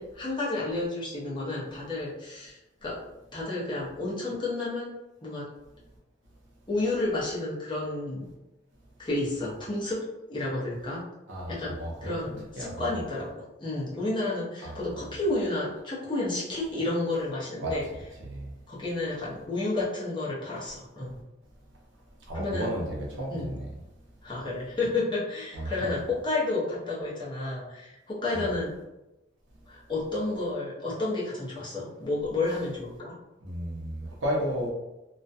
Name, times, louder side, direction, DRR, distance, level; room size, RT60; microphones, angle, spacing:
voice 1, 0.0-3.0 3.3-5.0 5.2-5.5 6.7-8.3 9.0-10.0 10.3-11.0 11.5-17.9 18.7-21.2 22.3-22.7 23.3-23.6 24.2-28.7 29.7-33.1, left 2 dB, 25° left, -7 dB, 0.8 m, -31 dB
voice 2, 11.3-12.9 14.6-14.8 17.6-17.7 18.2-18.5 22.3-23.7 25.5-25.9 28.3-28.5 33.4-34.7, equal, 75° right, -2 dB, 0.7 m, -33 dB
2.4 x 2.2 x 2.6 m, 0.96 s
head